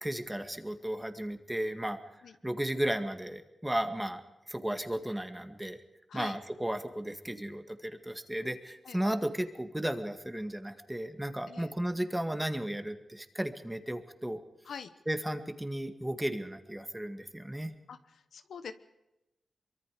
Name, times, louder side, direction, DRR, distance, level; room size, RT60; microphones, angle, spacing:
voice 1, 0.0-2.0 2.4-4.2 4.5-5.8 6.1-14.4 15.1-17.7, right 1 dB, 10° right, 8 dB, 2.0 m, -34 dB
voice 2, 18.3-18.7, left 6 dB, 85° left, 11 dB, 1.2 m, -43 dB
24.0 x 23.0 x 5.1 m, 0.93 s
cardioid pair, 85°, 0 cm